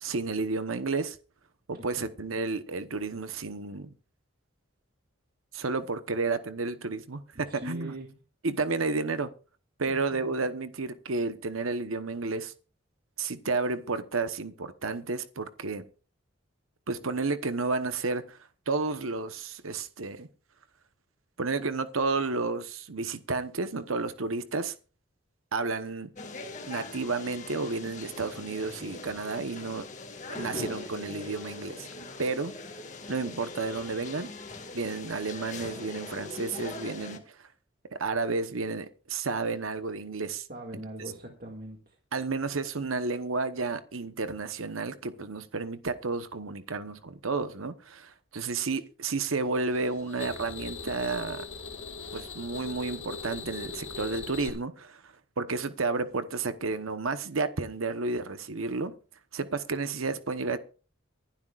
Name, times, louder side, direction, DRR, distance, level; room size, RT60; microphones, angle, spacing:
voice 1, 0.0-1.2 1.7-3.9 5.5-7.9 8.4-9.3 9.8-12.5 13.2-15.8 16.9-18.4 18.7-20.3 21.4-24.7 25.5-26.1 26.7-29.9 30.3-31.9 32.2-32.5 33.1-34.3 34.7-37.3 37.9-40.5 42.1-51.4 52.1-58.9 59.3-60.6, right 3 dB, 90° right, 1.0 m, -31 dB
voice 2, 7.3-8.2 9.9-10.3 40.5-41.9, right 1 dB, 45° right, 2.1 m, -41 dB
sound 1, 26.2-37.2, left 2 dB, 35° left, 1.8 m, -41 dB
sound 2, 49.7-54.5, left 4 dB, 65° left, 2.2 m, -40 dB
24.0 x 11.5 x 2.4 m
head